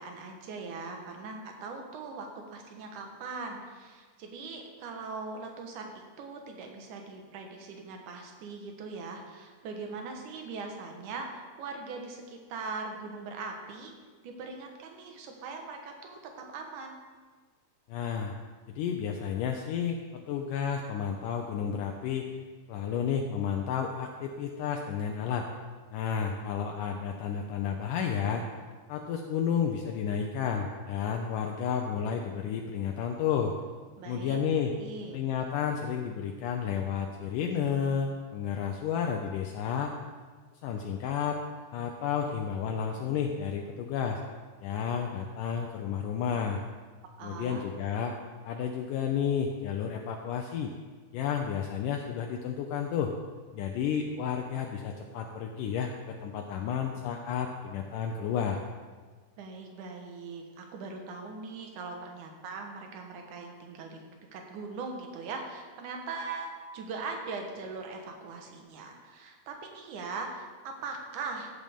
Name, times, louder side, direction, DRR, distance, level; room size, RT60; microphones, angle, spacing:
voice 1, 0.0-13.9 14.2-17.0 34.0-34.4 34.7-35.2 47.2-47.7 59.4-64.0 64.3-71.5, right 4 dB, 65° right, 3 dB, 2.3 m, -40 dB
voice 2, 17.9-18.3 18.8-22.3 22.7-25.5 25.9-28.5 28.9-33.5 34.1-34.7 35.1-39.9 40.6-41.4 41.7-44.2 44.6-46.6 47.2-48.1 48.5-50.7 51.1-53.1 53.5-58.6, left 7 dB, 85° left, 2 dB, 1.8 m, -31 dB
16.0 x 7.6 x 3.6 m, 1.4 s
omnidirectional pair, 4.5 m